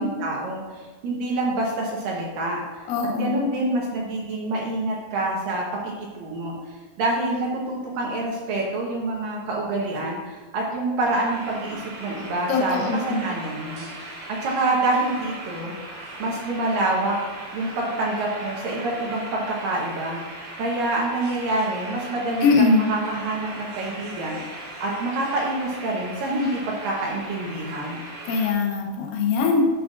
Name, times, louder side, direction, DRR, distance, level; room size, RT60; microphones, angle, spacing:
voice 1, 0.0-2.6 3.2-15.7 16.2-17.2 17.5-28.0, right 2 dB, 70° right, -3 dB, 2.1 m, -27 dB
voice 2, 2.9-3.4 12.5-13.3 22.4-22.9 28.3-29.6, left 4 dB, 85° left, 1 dB, 1.9 m, -21 dB
sound 1, 11.1-28.5, right 2 dB, 55° right, 4.1 m, -38 dB
12.0 x 7.1 x 2.5 m, 1.4 s
omnidirectional pair, 5.4 m